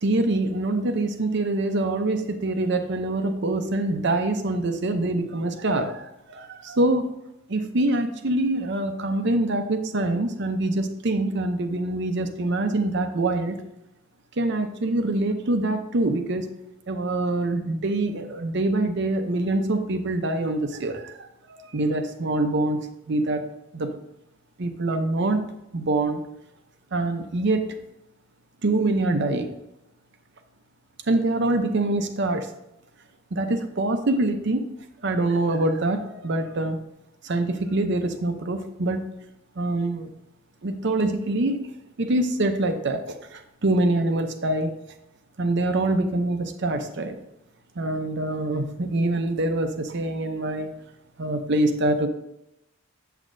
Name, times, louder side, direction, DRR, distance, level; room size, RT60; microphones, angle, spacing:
voice 1, 0.0-7.1 7.5-13.6 14.4-16.5 16.9-22.8 23.1-23.4 23.7-23.9 24.6-25.4 25.7-26.2 26.9-27.8 28.6-29.5 31.1-32.5 33.3-34.6 35.0-36.8 37.2-39.1 39.6-40.1 40.6-41.6 42.0-44.7 45.4-47.1 47.8-50.7 51.2-52.1, right 2 dB, 60° right, 7 dB, 0.7 m, -25 dB
8.1 x 7.3 x 2.6 m, 0.86 s
head